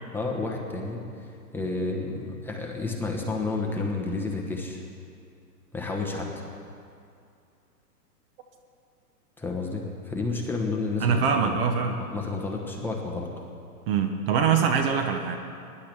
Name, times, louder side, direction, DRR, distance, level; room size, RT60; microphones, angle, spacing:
voice 1, 0.1-1.0 1.5-4.8 5.7-6.4 9.4-11.5 12.0-13.3, left 3 dB, 5° left, -1 dB, 1.0 m, -30 dB
voice 2, 11.0-12.0 13.9-15.4, right 6 dB, 35° right, 5 dB, 0.8 m, -23 dB
19.0 x 10.5 x 3.5 m, 2.4 s
hypercardioid pair, 125°, 47 cm